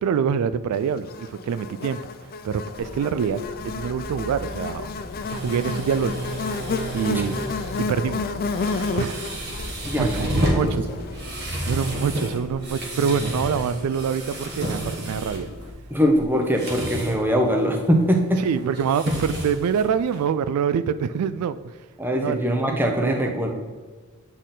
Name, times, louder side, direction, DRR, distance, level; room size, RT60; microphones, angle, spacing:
voice 1, 0.0-4.9 5.3-6.1 6.9-7.4 7.8-8.3 8.9-9.3 10.0-10.9 11.7-15.5 18.4-21.8 22.2-22.4 23.0-23.1, right 7 dB, 80° right, 15 dB, 0.3 m, -25 dB
Buzz, 1.1-11.5, left 4 dB, 40° left, 0.3 m, -31 dB
Bus, 2.8-15.7, left 2 dB, 90° left, 0.8 m, -40 dB
sound 1, 4.0-20.2, right 1 dB, 50° right, 1.3 m, -31 dB
voice 2, 9.8-10.7 15.9-18.4 22.0-23.5, equal, 10° right, 3 dB, 0.7 m, -22 dB
8.1 x 4.3 x 3.9 m, 1.4 s
head